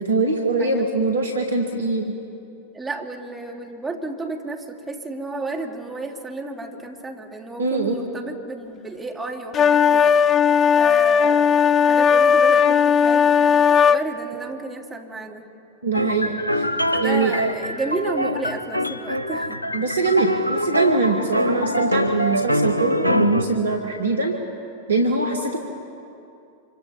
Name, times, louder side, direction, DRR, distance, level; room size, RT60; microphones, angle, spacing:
voice 1, 0.0-2.2 7.6-7.9 15.8-16.7 17.0-17.4 19.7-24.4 24.9-25.6, right 3 dB, 75° right, 3 dB, 1.7 m, -22 dB
voice 2, 2.7-10.2 10.8-15.5 16.9-19.6 25.2-25.4, right 3 dB, 10° right, 2 dB, 2.4 m, -32 dB
sound 1, 9.5-14.0, left 7 dB, 25° left, 0.6 m, -16 dB
sound 2, 15.9-23.4, equal, 90° left, 0.9 m, -24 dB
26.5 x 25.0 x 4.3 m, 2.6 s
figure-of-eight pair, 90°, 0 cm